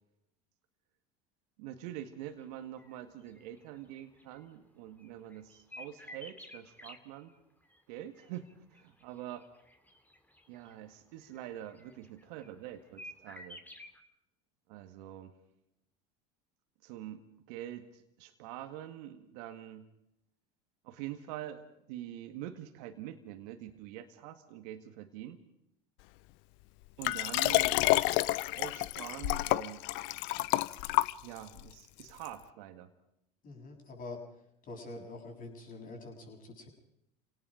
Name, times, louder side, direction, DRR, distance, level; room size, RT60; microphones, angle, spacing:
voice 1, 1.6-7.3 7.9-9.5 10.5-13.6 14.7-15.3 16.8-17.2 17.5-19.9 20.8-25.4 27.0-27.8 28.5-30.1 31.2-32.9, right 12 dB, 70° right, 7 dB, 2.0 m, -45 dB
sound 1, 2.3-2.4 2.8-3.0 3.3-4.4 5.0-7.0 7.7-10.7 11.2-12.7 13.0-14.0, left 1 dB, 10° left, 2.7 m, -51 dB
Liquid, 27.0-31.6 32.2-32.3, left 19 dB, 65° left, 0.7 m, -29 dB
voice 2, 33.4-34.2 34.6-36.7, left 2 dB, 40° left, 2 dB, 7.5 m, -45 dB
28.0 x 18.5 x 5.1 m, 0.80 s
hypercardioid pair, 85°, 21 cm